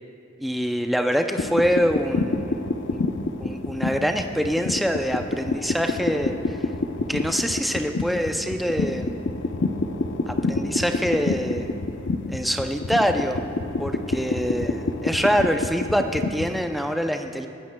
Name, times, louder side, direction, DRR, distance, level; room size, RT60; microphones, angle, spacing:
voice 1, 0.4-3.0 3.4-6.7 7.1-9.3 10.3-11.7 12.3-13.4 13.8-17.5, equal, ahead, 4 dB, 0.4 m, -25 dB
sound 1, 1.4-16.6, left 2 dB, 70° left, 0.6 m, -28 dB
20.5 x 13.0 x 2.2 m, 2.6 s
head